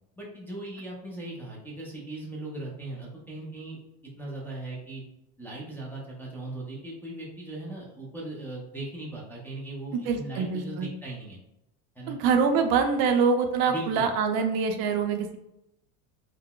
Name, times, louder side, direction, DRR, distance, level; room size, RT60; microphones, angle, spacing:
voice 1, 0.2-3.8 4.2-5.0 5.4-11.4 12.0-12.2 12.5-12.6 13.6-14.1, right 2 dB, 5° left, -5 dB, 0.4 m, -38 dB
voice 2, 10.1-10.9 12.1-15.3, right 5 dB, 55° right, 5 dB, 0.5 m, -24 dB
3.7 x 2.1 x 2.2 m, 0.85 s
supercardioid pair, 115°, 43 cm